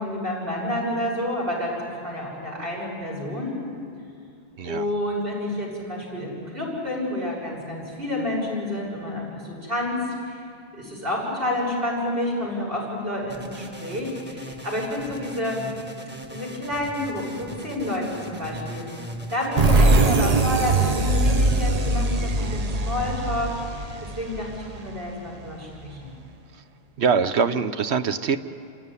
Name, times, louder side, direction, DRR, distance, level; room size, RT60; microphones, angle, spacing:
voice 1, 0.0-3.6 4.6-10.4 10.7-15.7 16.3-18.8 19.3-23.8 24.2-26.1, left 1 dB, 60° right, -3 dB, 6.6 m, -29 dB
sound 1, 13.3-20.2, equal, 10° right, 1.5 m, -39 dB
sound 2, 19.6-25.1, right 2 dB, 40° right, 0.9 m, -21 dB
voice 2, 27.0-28.4, right 6 dB, 80° right, 10 dB, 1.2 m, -23 dB
28.5 x 16.0 x 9.8 m, 2.6 s
omnidirectional pair, 1.1 m